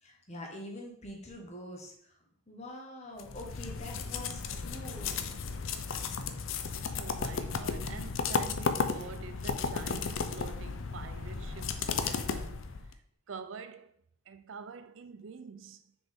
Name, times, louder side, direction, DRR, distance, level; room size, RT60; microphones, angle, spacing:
voice 1, 0.0-1.9 2.5-5.3, left 1 dB, 35° left, 1.3 m, -45 dB
sound 1, 3.2-12.9, left 5 dB, 70° left, 0.5 m, -34 dB
voice 2, 6.9-14.0 14.3-15.8, right 5 dB, 65° right, 0.5 m, -46 dB
6.2 x 5.0 x 3.6 m
head